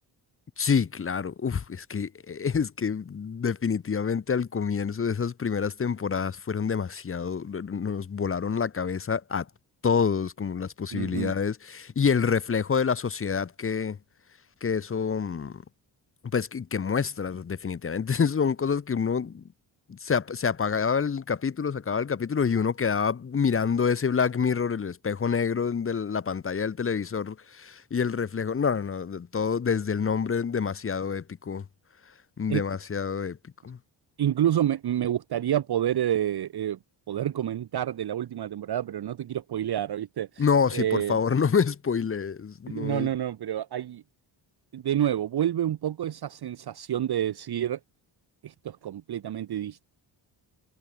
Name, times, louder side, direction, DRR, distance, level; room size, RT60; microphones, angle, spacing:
voice 1, 0.6-9.5 9.8-14.0 14.6-15.6 16.3-19.4 19.9-31.6 32.4-33.4 33.6-33.8 40.4-43.1, left 6 dB, 30° left, 0.7 m, -27 dB
voice 2, 10.9-11.3 32.5-32.6 34.2-36.8 37.1-40.4 40.7-41.2 42.7-44.0 44.7-47.8 48.4-49.9, right 11 dB, 55° right, 1.0 m, -28 dB
supercardioid pair, 60°, 47 cm